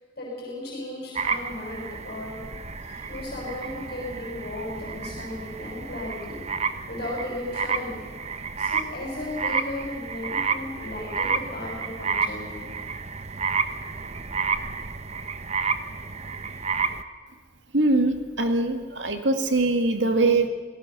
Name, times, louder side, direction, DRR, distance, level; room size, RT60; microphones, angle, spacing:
voice 1, 0.2-2.4 2.8-6.4 6.9-8.0 8.6-12.7 16.0-16.2, left 1 dB, 55° left, -2 dB, 6.5 m, -35 dB
sound 1, 1.1-17.0, right 5 dB, 35° right, 1.0 m, -31 dB
voice 2, 17.7-20.5, right 2 dB, 80° right, 7 dB, 2.1 m, -22 dB
27.0 x 17.5 x 6.9 m, 1.5 s
head